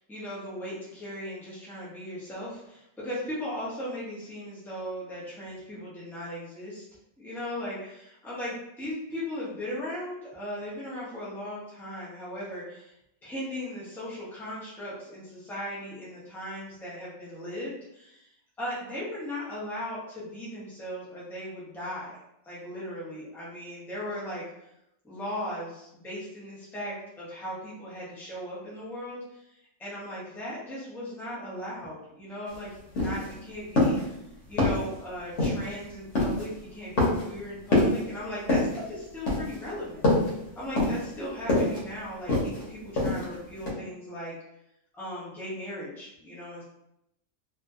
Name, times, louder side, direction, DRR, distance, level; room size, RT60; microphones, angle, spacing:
voice 1, 0.0-6.8 7.2-12.9 13.2-18.3 18.6-22.2 22.4-24.4 25.0-29.4 29.8-34.2 34.5-40.0 40.6-44.3 44.9-46.6, left 1 dB, ahead, -8 dB, 0.6 m, -37 dB
sound 1, 32.5-32.6 32.9-33.3 33.8-34.1 34.6-34.9 35.4-35.7 36.1-36.5 37.0-37.3 37.7-38.0 38.5-38.8 39.3-39.6 40.0-40.3 40.8-41.1 41.5-41.8 42.3-42.6 43.0-43.3 43.7-43.8, left 2 dB, 60° left, 1.1 m, -24 dB
2.6 x 2.6 x 2.3 m, 0.81 s
omnidirectional pair, 1.4 m